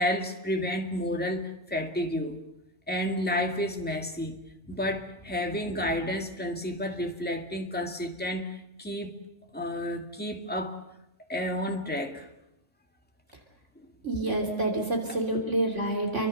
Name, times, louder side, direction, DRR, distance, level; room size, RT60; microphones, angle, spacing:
voice 1, 0.0-2.4 2.9-4.4 4.7-9.2 9.5-10.8 11.3-12.3 13.8-13.9, left 1 dB, 5° left, 3 dB, 2.2 m, -31 dB
voice 2, 14.0-16.3, right 2 dB, 55° right, 2 dB, 3.8 m, -28 dB
29.5 x 24.0 x 6.7 m, 0.85 s
omnidirectional pair, 1.5 m